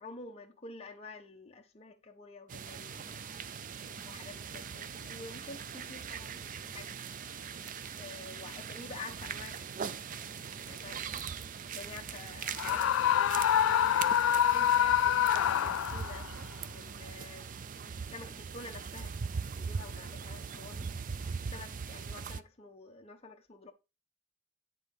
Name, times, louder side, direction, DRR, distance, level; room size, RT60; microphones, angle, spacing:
voice 1, 0.0-3.2 3.8-7.0 8.0-10.2 10.7-11.2 11.6-13.2 14.1-16.3 16.7-17.5 18.1-19.2 19.5-20.9 21.4-23.7, left 3 dB, 30° left, 0.7 m, -49 dB
sound 1, 2.5-22.4, right 6 dB, 40° right, 0.4 m, -41 dB
Screaming, 12.6-16.3, left 9 dB, 75° left, 0.3 m, -26 dB
9.7 x 3.8 x 5.3 m
head